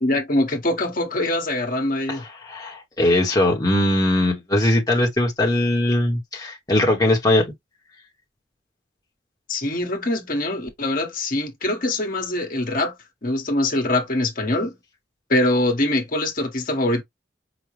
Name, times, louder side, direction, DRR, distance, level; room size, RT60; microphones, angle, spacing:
voice 1, 0.0-2.2 9.5-12.9 13.2-14.7 15.3-17.0, left 1 dB, 50° left, 1.2 m, -23 dB
voice 2, 2.1-7.5, left 1 dB, 20° left, 1.0 m, -20 dB
5.0 x 2.2 x 3.1 m
head